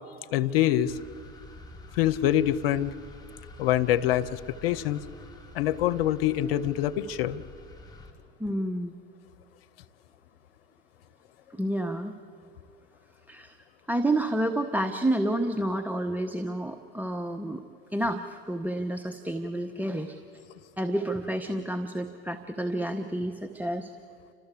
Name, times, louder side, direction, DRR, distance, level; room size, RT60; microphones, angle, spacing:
voice 1, 0.3-0.9 1.9-2.9 3.6-5.0 5.5-7.4, left 12 dB, 85° left, 13 dB, 0.8 m, -25 dB
sound 1, 0.9-8.1, left 2 dB, 15° left, 3.5 m, -48 dB
voice 2, 8.4-8.9 11.5-12.1 13.3-13.6 13.9-17.6 17.9-20.2 20.8-23.9, right 1 dB, 5° right, 5 dB, 1.1 m, -29 dB
29.5 x 13.5 x 8.4 m, 2.5 s
hypercardioid pair, 75°, 29 cm